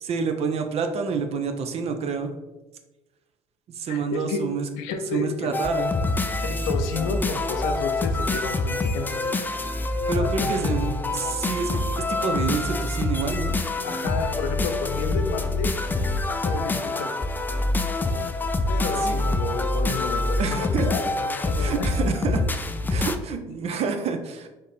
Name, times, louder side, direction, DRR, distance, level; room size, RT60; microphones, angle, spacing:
voice 1, 0.0-2.3 3.7-4.7 5.1-5.9 10.1-11.8 12.1-13.5 19.0-19.1 20.4-20.9 21.6-22.4 22.9-24.5, right 5 dB, 45° right, 6 dB, 0.6 m, -28 dB
voice 2, 3.9-4.4 4.8-5.5 6.4-9.1 10.1-10.9 13.8-15.8 16.3-17.2 18.7-22.1, left 4 dB, 70° left, 6 dB, 0.5 m, -31 dB
sound 1, 5.5-23.2, left 2 dB, 15° left, 0.3 m, -26 dB
4.1 x 2.6 x 3.4 m, 1.1 s
hypercardioid pair, 60°, 14 cm